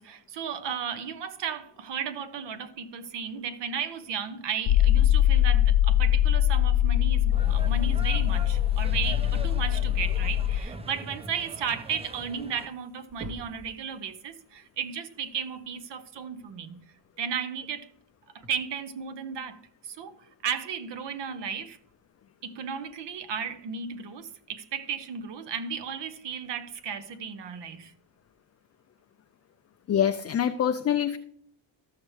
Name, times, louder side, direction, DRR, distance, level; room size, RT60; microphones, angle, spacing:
voice 1, 0.0-16.8 17.2-17.9 18.3-21.8 22.4-27.9, right 7 dB, 60° right, 0.9 m, -34 dB
sound 1, 4.7-10.6, left 11 dB, 75° left, 0.7 m, -22 dB
sound 2, 7.3-12.7, right 2 dB, 15° right, 0.6 m, -42 dB
sound 3, 13.1-13.7 15.5-15.6 17.4-17.5 18.4-18.5, right 1 dB, 30° right, 1.0 m, -41 dB
voice 2, 29.9-31.2, left 9 dB, 35° left, 0.4 m, -25 dB
13.5 x 6.5 x 3.2 m
cardioid pair, 85°, 48 cm